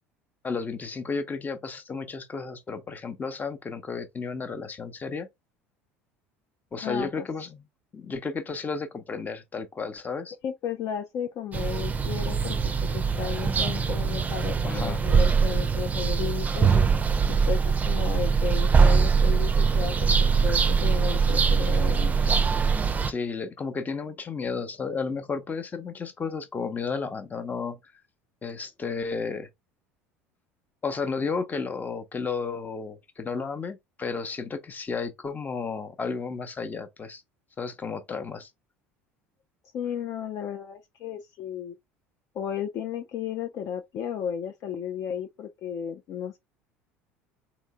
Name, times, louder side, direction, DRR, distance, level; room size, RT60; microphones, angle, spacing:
voice 1, 0.4-5.3 6.7-7.6 7.9-10.4 14.6-15.0 23.1-27.8 28.4-29.5 30.8-37.2 37.6-38.5, left 5 dB, 25° left, 0.8 m, -33 dB
voice 2, 6.8-7.3 10.4-12.6 12.8-16.7 17.3-19.9 20.2-22.2 39.7-41.8 42.3-46.4, left 8 dB, 50° left, 0.5 m, -34 dB
sound 1, 11.5-23.1, right 5 dB, 20° right, 0.5 m, -23 dB
3.7 x 3.0 x 3.3 m
hypercardioid pair, 70°, 7 cm